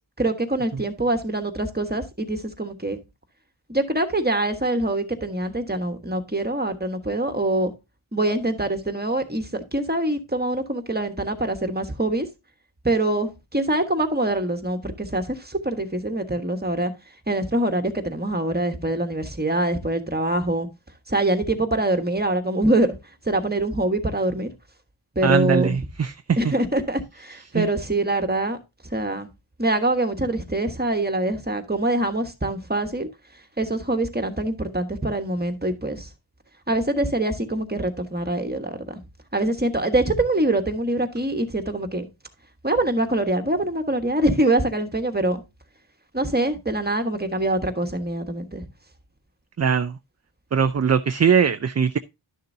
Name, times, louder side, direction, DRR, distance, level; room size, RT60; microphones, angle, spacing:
voice 1, 0.2-3.0 3.7-7.7 8.1-12.3 12.8-16.9 17.3-20.7 21.1-23.0 23.2-24.5 25.1-25.7 26.4-28.6 28.9-29.3 29.6-33.1 33.6-36.1 36.7-39.0 39.3-42.1 42.6-45.4 46.1-48.7, right 1 dB, 20° right, 1.3 m, -24 dB
voice 2, 25.2-26.5 27.5-27.7 49.6-50.0 50.5-52.0, right 6 dB, 35° right, 0.4 m, -21 dB
11.5 x 6.7 x 2.7 m
wide cardioid pair, 45°, 49 cm